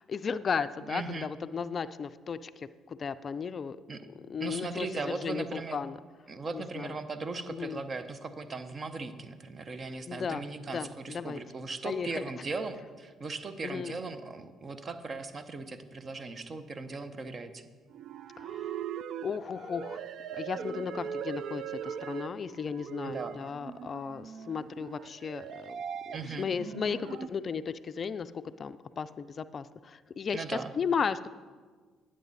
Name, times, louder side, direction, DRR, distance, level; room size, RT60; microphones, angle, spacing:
voice 1, 0.0-3.8 4.1-6.0 6.5-7.0 7.5-7.8 10.1-10.5 10.7-11.4 11.8-12.3 13.6-14.0 18.4-18.8 19.2-20.0 20.3-25.8 26.1-28.3 28.6-31.3, left 6 dB, 45° left, 14 dB, 0.3 m, -35 dB
voice 2, 0.8-1.3 3.9-4.1 4.4-5.8 6.3-17.6 23.0-23.4 26.1-26.5 30.3-30.7, right 3 dB, 40° right, 10 dB, 0.8 m, -38 dB
sound 1, 17.9-27.3, right 8 dB, 65° right, 0.3 m, -40 dB
10.5 x 7.6 x 4.1 m, 1.5 s
hypercardioid pair, 55°, 0 cm